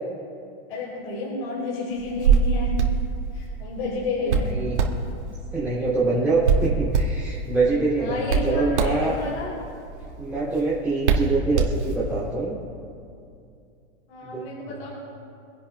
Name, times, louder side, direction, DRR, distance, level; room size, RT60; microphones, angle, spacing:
voice 1, 0.7-2.7 3.3-4.5 8.0-9.5 14.1-14.9, left 3 dB, 60° left, -5 dB, 3.8 m, -31 dB
Hands, 2.0-12.2, right 5 dB, 85° right, 2.5 m, -25 dB
voice 2, 4.2-4.8 5.5-9.1 10.2-12.6 14.2-14.7, right 3 dB, 5° right, -9 dB, 3.1 m, -25 dB
26.5 x 11.5 x 2.4 m, 2.5 s
supercardioid pair, 155°, 34 cm